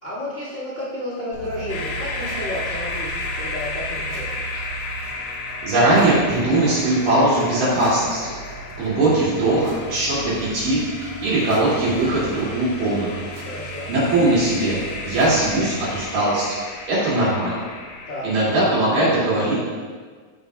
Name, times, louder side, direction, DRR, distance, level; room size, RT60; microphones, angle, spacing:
voice 1, 0.0-4.6 13.4-13.9 18.1-18.3, left 1 dB, 30° left, -8 dB, 1.5 m, -32 dB
sound 1, 1.3-16.1, right 3 dB, 75° right, 1.5 m, -38 dB
sound 2, 1.7-18.6, left 3 dB, 85° left, 3.0 m, -34 dB
voice 2, 5.6-8.3 8.8-10.9 11.2-13.3 13.9-16.6 16.8-17.7 18.2-19.5, right 2 dB, 60° right, -8 dB, 3.0 m, -20 dB
14.0 x 5.2 x 2.3 m, 1.5 s
omnidirectional pair, 5.1 m